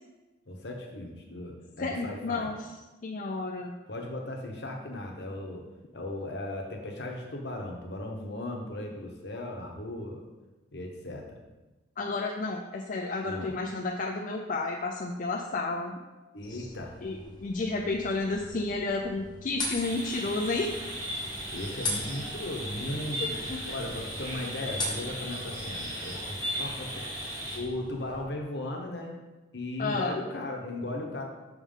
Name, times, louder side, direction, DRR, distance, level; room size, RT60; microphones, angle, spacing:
voice 1, 0.5-2.5 3.9-5.6 5.9-10.2 10.7-11.2 13.2-13.6 16.3-16.9 21.5-23.4 23.7-27.0 27.5-29.1 29.5-31.2, left 1 dB, 60° left, 1 dB, 1.0 m, -37 dB
voice 2, 1.8-2.7 3.0-3.8 12.0-16.0 16.5-16.7 17.0-20.8 23.2-23.6 29.8-30.1, left 3 dB, 45° left, 1 dB, 0.4 m, -31 dB
sound 1, 16.4-28.3, left 2 dB, 25° left, 0.9 m, -41 dB
sound 2, 19.8-27.6, equal, 15° right, 1.6 m, -36 dB
6.0 x 3.6 x 5.5 m, 1.1 s
head